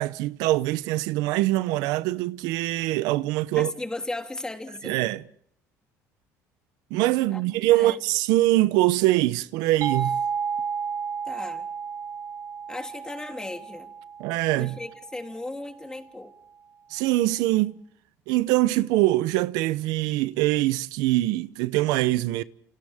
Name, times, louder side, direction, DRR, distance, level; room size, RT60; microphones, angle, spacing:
voice 1, 0.0-3.7 4.8-5.2 6.9-10.2 14.2-14.7 16.9-17.8 18.3-22.4, right 17 dB, 85° right, 0.8 m, -23 dB
voice 2, 3.5-5.1 7.3-7.4 7.7-8.0 11.2-11.7 12.7-13.9 14.5-16.3, left 2 dB, 10° left, 3.3 m, -36 dB
sound 1, 9.8-15.3, right 6 dB, 55° right, 5.9 m, -32 dB
29.5 x 29.5 x 3.6 m
cardioid pair, 110°, 7 cm